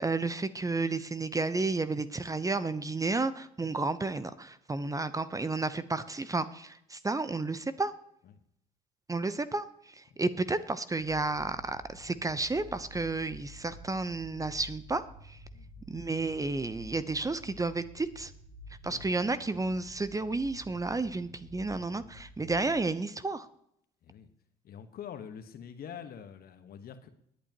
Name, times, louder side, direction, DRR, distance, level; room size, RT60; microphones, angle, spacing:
voice 1, 0.0-7.9 9.1-15.4 15.9-18.3 18.8-23.5, right 3 dB, 20° right, 13 dB, 0.8 m, -32 dB
sound 1, 11.0-22.8, left 1 dB, 40° right, 4.9 m, -50 dB
voice 2, 15.5-15.9 18.8-19.0 24.0-24.3 24.6-27.1, left 8 dB, 55° left, 9 dB, 1.3 m, -46 dB
22.0 x 8.4 x 3.0 m, 0.73 s
hypercardioid pair, 60°, 18 cm